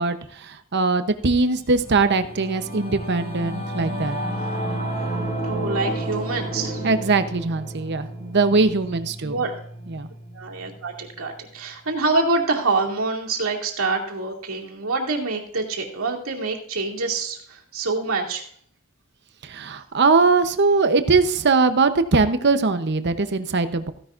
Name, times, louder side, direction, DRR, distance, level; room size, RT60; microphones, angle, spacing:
voice 1, 0.0-4.2 6.8-9.4 9.9-10.1 19.4-23.9, right 3 dB, 50° right, 10 dB, 0.8 m, -21 dB
Singing / Musical instrument, 1.6-11.3, right 1 dB, 40° left, 4.4 m, -31 dB
voice 2, 5.4-6.9 9.2-9.6 10.3-18.4, right 3 dB, 70° right, -1 dB, 2.5 m, -26 dB
15.5 x 10.5 x 2.5 m, 0.62 s
head